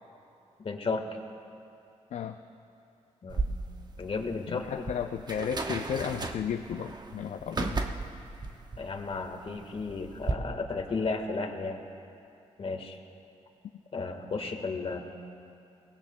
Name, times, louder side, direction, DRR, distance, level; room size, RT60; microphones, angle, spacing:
voice 1, 0.6-1.0 3.2-3.5 4.0-4.9 8.8-11.8 12.6-13.0 13.9-15.0, left 4 dB, 50° left, 4 dB, 1.5 m, -33 dB
sound 1, 3.3-10.3, right 3 dB, 35° right, 0.9 m, -35 dB
voice 2, 4.5-7.8, left 8 dB, 70° left, 6 dB, 0.5 m, -34 dB
22.5 x 18.0 x 2.2 m, 2.6 s
cardioid pair, 70°, 12 cm